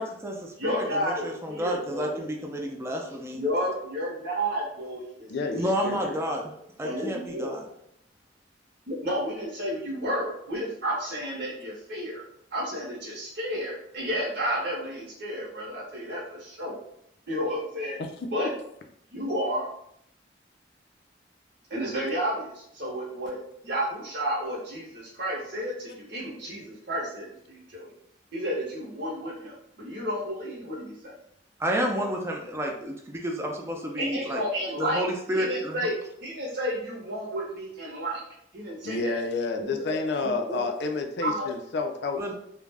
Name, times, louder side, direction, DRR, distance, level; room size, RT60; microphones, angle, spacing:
voice 1, 0.0-3.4 5.5-6.5 6.8-7.7 31.6-34.4 34.8-35.9 42.2-42.3, equal, 15° right, 1 dB, 0.4 m, -30 dB
voice 2, 0.6-2.2 3.3-5.3 5.5-5.7 6.8-7.6 8.9-12.2 12.5-16.8 17.3-18.0 18.3-18.5 19.1-19.7 21.7-23.4 23.6-27.9 28.3-31.1 34.0-35.0 35.3-38.2 38.5-39.2 39.6-40.9 41.2-41.5, equal, 60° right, -6 dB, 0.7 m, -31 dB
voice 3, 5.3-6.2 18.4-18.5 38.8-42.3, left 3 dB, 65° left, 4 dB, 0.4 m, -30 dB
2.3 x 2.1 x 3.3 m, 0.72 s
head